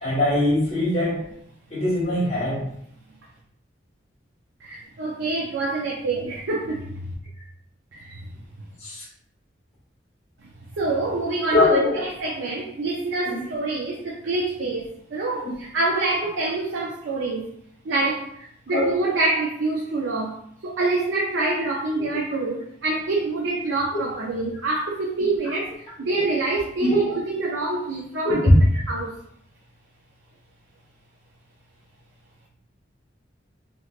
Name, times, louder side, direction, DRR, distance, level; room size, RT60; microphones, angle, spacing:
voice 1, 0.0-1.3 1.7-2.7 8.8-9.0 11.5-12.1 13.2-13.4 14.6-14.7 15.4-15.5 18.7-18.9 22.0-22.2 26.8-27.2 28.2-28.4, left 2 dB, 35° left, -10 dB, 1.4 m, -23 dB
voice 2, 4.6-7.1 7.9-8.2 10.4-14.8 15.1-17.5 17.8-28.5 28.9-29.2, right 2 dB, 80° right, -2 dB, 0.5 m, -26 dB
3.2 x 2.8 x 2.4 m, 0.68 s
head